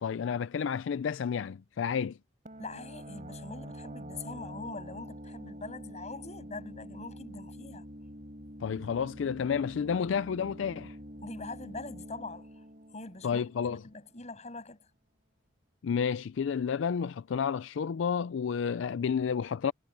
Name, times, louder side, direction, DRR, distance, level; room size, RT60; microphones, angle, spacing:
voice 1, 0.0-2.2 8.6-11.0 13.2-13.8 15.8-19.7, left 6 dB, 75° left, 0.4 m, -31 dB
sound 1, 2.5-14.0, equal, 40° right, 6.9 m, -46 dB
voice 2, 2.6-7.8 11.2-12.5 12.9-13.4 13.7-14.8, left 3 dB, 35° left, 7.7 m, -43 dB
head